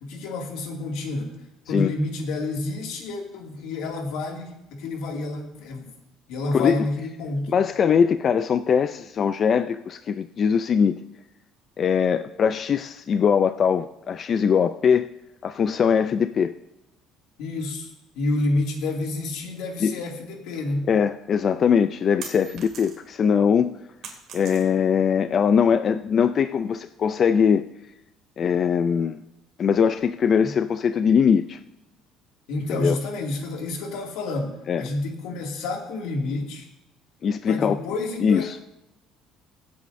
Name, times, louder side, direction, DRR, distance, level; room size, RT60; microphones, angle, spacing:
voice 1, 0.0-5.9 6.3-7.5 17.4-17.9 18.2-20.9 30.4-30.5 32.5-36.7 37.5-38.5, left 2 dB, 75° left, 1 dB, 2.2 m, -29 dB
voice 2, 6.5-6.9 7.5-11.0 11.8-15.1 15.4-16.5 19.8-19.9 20.9-23.8 24.3-27.6 28.4-29.2 29.6-31.6 32.7-33.0 34.7-34.8 37.2-37.8 38.2-38.6, left 7 dB, 30° left, 10 dB, 0.3 m, -21 dB
sound 1, 22.2-23.2 23.6-25.0, right 6 dB, 50° right, 2.3 m, -41 dB
23.5 x 8.4 x 2.6 m, 0.90 s
cardioid pair, 160°, 0 cm